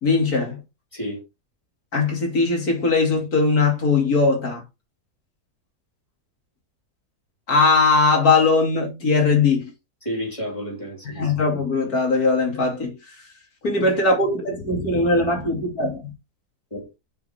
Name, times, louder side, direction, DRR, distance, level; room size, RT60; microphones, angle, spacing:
voice 1, 0.0-0.6 1.9-4.6 7.5-9.7 11.1-13.0 13.6-16.1, left 3 dB, 65° left, 3.1 m, -20 dB
voice 2, 10.0-11.3 16.7-17.0, equal, 20° left, 3.6 m, -31 dB
6.9 x 5.6 x 3.6 m
omnidirectional pair, 1.7 m